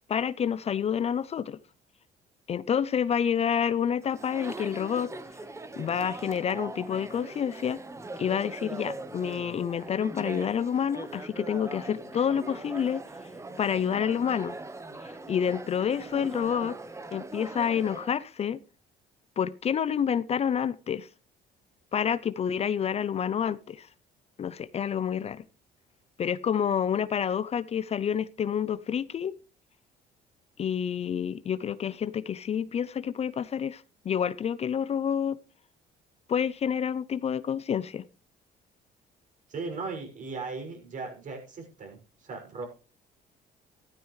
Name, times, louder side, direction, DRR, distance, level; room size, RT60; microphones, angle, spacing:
voice 1, 0.1-1.6 2.5-5.1 5.8-7.8 8.2-13.0 13.6-14.6 15.0-16.8 17.1-18.6 19.4-21.1 21.9-23.9 24.4-25.4 26.2-29.3 30.6-35.4 36.3-38.0, left 8 dB, 40° left, 0.6 m, -28 dB
Chatter, 4.0-18.2, right 2 dB, 15° right, 1.3 m, -41 dB
voice 2, 39.5-42.6, right 4 dB, 50° right, 6.3 m, -37 dB
15.0 x 12.5 x 3.2 m
cardioid pair, 110°, 17 cm